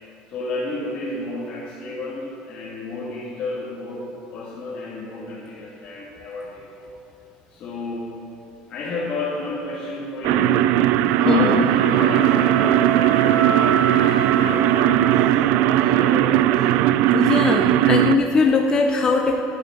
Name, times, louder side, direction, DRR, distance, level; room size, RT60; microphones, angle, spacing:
voice 1, 0.3-6.9 7.5-8.2 8.7-10.8 11.2-16.7, left 2 dB, 40° left, -6 dB, 2.0 m, -31 dB
sound 1, 10.2-18.2, right 13 dB, 60° right, 0.3 m, -18 dB
sound 2, 11.1-15.5, right 6 dB, 90° right, 1.3 m, -27 dB
voice 2, 11.2-11.7 17.1-19.4, left 4 dB, 20° left, 2 dB, 0.6 m, -20 dB
10.5 x 9.2 x 5.9 m, 2.8 s
cardioid pair, 155°, 3 cm